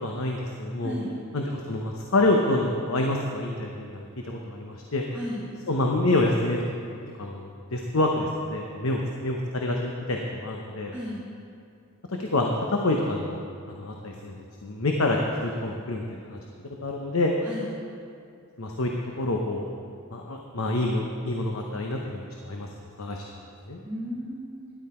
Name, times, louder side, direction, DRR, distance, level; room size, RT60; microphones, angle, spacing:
voice 1, 0.0-0.9 1.3-5.0 5.7-11.0 12.1-13.4 13.7-16.4 16.8-17.3 18.6-18.9 19.2-19.6 20.1-22.7 23.0-23.2 23.7-23.8, left 2 dB, 70° left, 1 dB, 0.9 m, -27 dB
voice 2, 0.8-1.2 5.1-5.4 10.9-11.2 17.4-17.7 23.8-24.7, equal, 10° right, -8 dB, 1.6 m, -34 dB
12.0 x 11.0 x 4.4 m, 2.4 s
head